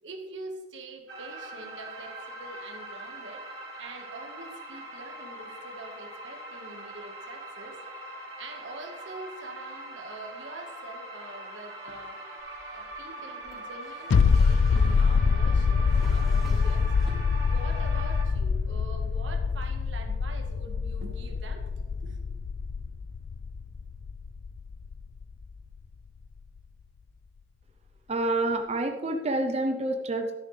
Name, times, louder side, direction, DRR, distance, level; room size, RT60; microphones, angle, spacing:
voice 1, 0.0-7.8 8.4-12.2 12.7-17.1 17.5-21.6 22.0-22.2, right 2 dB, 85° right, 4 dB, 1.6 m, -44 dB
sound 1, 1.1-18.2, right 2 dB, 65° right, 3.3 m, -42 dB
Drawer open or close, 12.4-17.6 17.9-18.7, right 1 dB, ahead, 2.9 m, -51 dB
sound 2, 14.1-25.4 25.7-25.8, left 5 dB, 85° left, 0.3 m, -25 dB
voice 2, 28.1-30.3, right 2 dB, 35° right, 4 dB, 0.6 m, -28 dB
12.0 x 10.0 x 3.3 m, 1.4 s
head